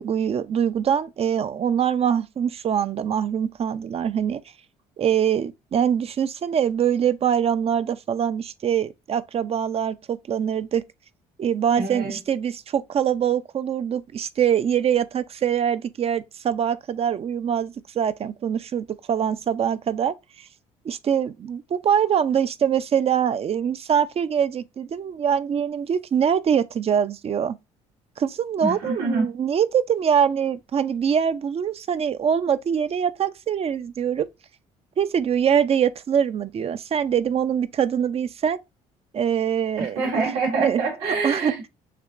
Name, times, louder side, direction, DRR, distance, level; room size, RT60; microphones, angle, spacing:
voice 1, 0.0-4.4 5.0-10.8 11.4-20.5 20.8-27.6 28.2-34.3 35.0-38.6 39.1-40.0 40.3-40.8 41.2-41.5, right 8 dB, 45° right, 0.5 m, -23 dB
voice 2, 11.8-12.2 28.6-29.3 39.8-41.7, right 3 dB, 80° right, 2.1 m, -26 dB
6.7 x 2.8 x 2.5 m
supercardioid pair, 70°, 15 cm